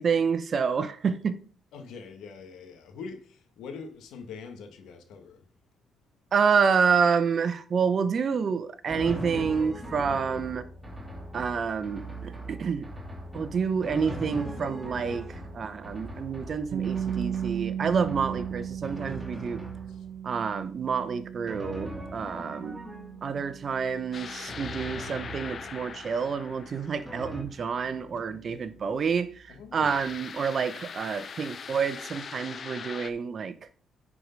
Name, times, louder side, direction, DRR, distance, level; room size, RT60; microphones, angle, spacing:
voice 1, 0.0-1.4 6.3-10.6 11.3-12.9 13.3-15.3 15.5-19.6 20.2-22.8 23.2-33.5, right 6 dB, 50° right, 0.9 m, -28 dB
voice 2, 1.7-5.4 19.9-20.0 28.3-28.7 29.5-29.9, left 5 dB, 80° left, 1.6 m, -44 dB
Drum, 8.9-20.2 21.5-23.4 24.5-26.0 27.1-27.4, right 1 dB, 10° right, 2.7 m, -40 dB
sound 1, 16.7-28.6, right 9 dB, 65° right, 0.5 m, -38 dB
sound 2, 24.1-27.6 29.8-33.1, left 6 dB, 50° left, 0.7 m, -41 dB
9.9 x 4.9 x 5.2 m
cardioid pair, 90°, 0 cm